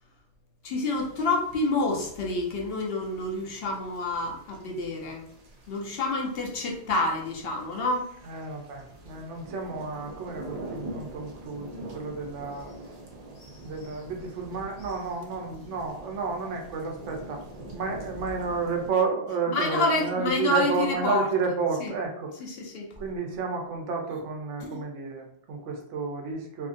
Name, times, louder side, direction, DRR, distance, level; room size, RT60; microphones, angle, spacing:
voice 1, 0.6-5.2 5.7-8.2 13.4-14.0 19.5-21.3 21.8-21.9 22.4-22.9 24.6-24.8, left 2 dB, 65° left, 0 dB, 0.8 m, -28 dB
sound 1, 0.9-18.9, right 1 dB, 55° right, 0.4 m, -45 dB
voice 2, 8.3-12.7 13.6-17.4 17.7-22.3 23.0-26.7, right 4 dB, 85° right, 2 dB, 1.0 m, -31 dB
2.7 x 2.5 x 2.5 m, 0.70 s
omnidirectional pair, 1.2 m